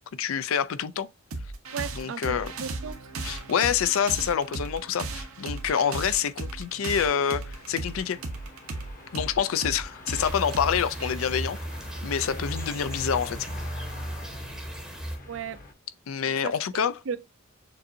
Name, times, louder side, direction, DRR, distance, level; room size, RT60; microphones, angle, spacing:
voice 1, 0.2-1.1 1.9-2.5 3.2-8.2 9.1-11.6 12.0-13.5 16.1-17.0, left 8 dB, 75° left, 0.4 m, -27 dB
sound 1, 1.3-12.4, right 3 dB, 80° right, 1.0 m, -37 dB
voice 2, 1.7-3.0 15.3-15.6 16.4-16.5 17.1-17.2, right 6 dB, 65° right, 0.4 m, -34 dB
sound 2, 7.5-15.7, left 3 dB, 40° left, 0.9 m, -44 dB
sound 3, 10.2-15.2, right 1 dB, 5° right, 0.7 m, -36 dB
6.8 x 2.6 x 2.7 m
head